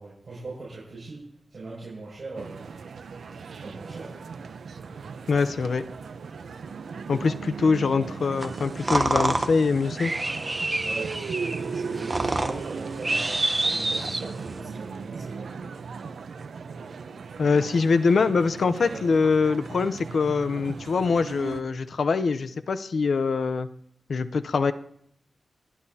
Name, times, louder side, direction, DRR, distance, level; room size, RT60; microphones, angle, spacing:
voice 1, 0.0-2.7 3.5-4.1 10.8-15.5 17.6-17.7 18.9-19.0, right 3 dB, 50° right, -5 dB, 6.4 m, -40 dB
sound 1, 2.4-21.6, right 5 dB, 85° right, 0.7 m, -37 dB
voice 2, 5.3-5.8 7.1-10.1 17.4-23.7 24.1-24.7, left 4 dB, 70° left, 10 dB, 0.7 m, -23 dB
sound 2, 8.4-14.6, right 2 dB, 25° right, 1.0 m, -28 dB
30.0 x 11.0 x 2.8 m, 0.69 s
wide cardioid pair, 115°, 0 cm